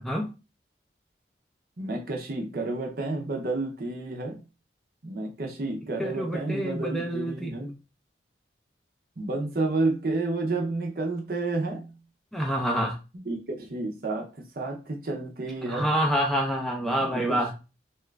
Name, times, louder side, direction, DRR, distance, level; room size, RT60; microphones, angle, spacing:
voice 1, 1.8-4.4 5.0-7.8 9.2-11.9 13.1-15.9 17.0-17.5, right 2 dB, 50° right, 0.6 m, -30 dB
voice 2, 6.0-7.6 12.3-13.0 15.7-17.5, equal, ahead, 0.4 m, -27 dB
2.9 x 2.3 x 3.2 m
head